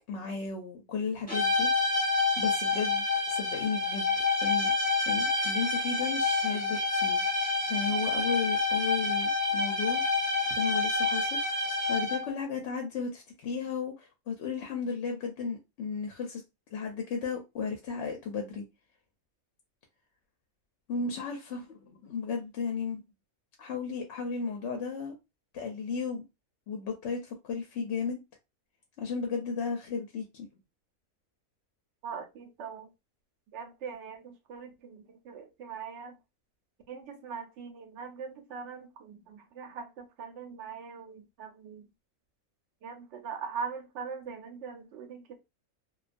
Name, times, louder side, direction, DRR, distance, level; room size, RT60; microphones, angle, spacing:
voice 1, 0.1-1.7 2.4-4.1 4.4-4.7 5.1-10.0 10.4-11.4 11.9-16.4 16.7-18.6 20.9-23.0 23.6-25.1 25.5-26.2 26.7-28.2 29.0-30.5, left 5 dB, 65° left, 0.7 m, -34 dB
sound 1, 1.3-12.4, left 3 dB, 5° left, 0.7 m, -28 dB
voice 2, 32.0-32.9 33.5-36.1 36.9-41.9 42.8-45.4, right 6 dB, 65° right, 0.8 m, -41 dB
2.3 x 2.3 x 2.5 m
omnidirectional pair, 1.5 m